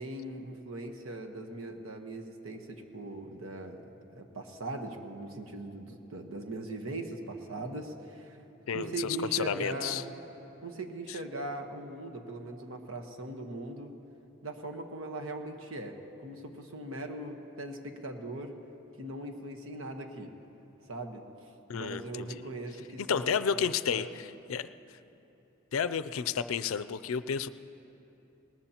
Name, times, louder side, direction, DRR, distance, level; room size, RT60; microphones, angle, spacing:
voice 1, 0.0-3.8 4.1-8.4 8.7-10.1 10.6-13.9 14.4-18.5 19.0-20.3 20.8-24.1, right 2 dB, 90° right, 4 dB, 1.2 m, -40 dB
voice 2, 8.7-10.0 21.7-22.4 23.1-25.0 25.7-27.5, left 7 dB, 85° left, 13 dB, 0.4 m, -32 dB
21.0 x 19.0 x 2.9 m, 3.0 s
head